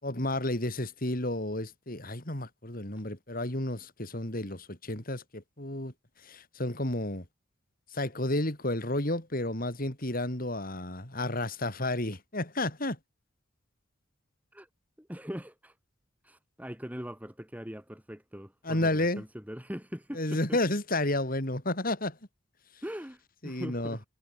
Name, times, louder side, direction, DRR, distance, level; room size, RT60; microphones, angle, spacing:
voice 1, 0.0-5.9 6.2-7.3 7.9-13.0 18.6-19.2 20.1-22.2 23.4-24.0, left 1 dB, 45° left, 4.2 m, -31 dB
voice 2, 15.0-15.8 16.2-20.6 22.8-24.0, equal, 10° right, 6.5 m, -41 dB
head